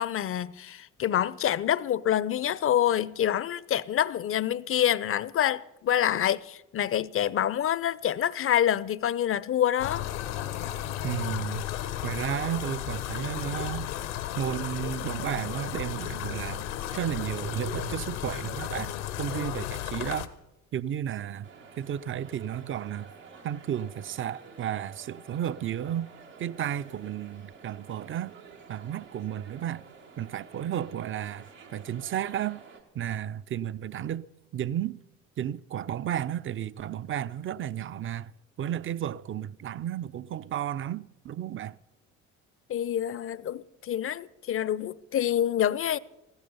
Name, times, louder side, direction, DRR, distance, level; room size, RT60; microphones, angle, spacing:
voice 1, 0.0-10.0 42.7-46.0, left 10 dB, 35° left, 0.6 m, -27 dB
sound 1, 9.8-20.3, left 12 dB, 75° left, 1.0 m, -34 dB
voice 2, 11.0-11.7 12.0-13.9 14.4-16.7 16.9-20.3 20.7-21.5 21.8-23.1 23.4-26.1 26.4-28.3 28.7-29.8 30.2-31.5 31.7-32.6 32.9-34.3 34.5-35.0 35.4-38.3 38.6-41.8, right 10 dB, 35° right, 0.5 m, -33 dB
sound 2, 21.4-32.8, right 5 dB, 90° right, 1.9 m, -50 dB
15.0 x 14.0 x 5.5 m
hypercardioid pair, 55°, 36 cm